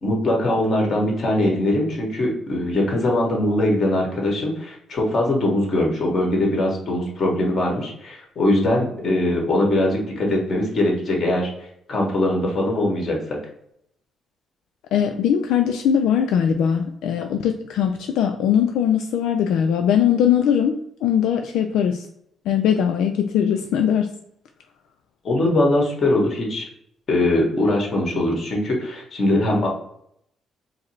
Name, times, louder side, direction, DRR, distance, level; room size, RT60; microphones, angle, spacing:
voice 1, 0.0-11.5 11.9-13.4 25.2-26.6 27.1-29.7, left 1 dB, 50° left, -1 dB, 1.7 m, -21 dB
voice 2, 14.9-22.1 22.5-24.1, left 8 dB, 85° left, 5 dB, 0.3 m, -20 dB
4.7 x 2.0 x 4.4 m, 0.73 s
cardioid pair, 90°, 0 cm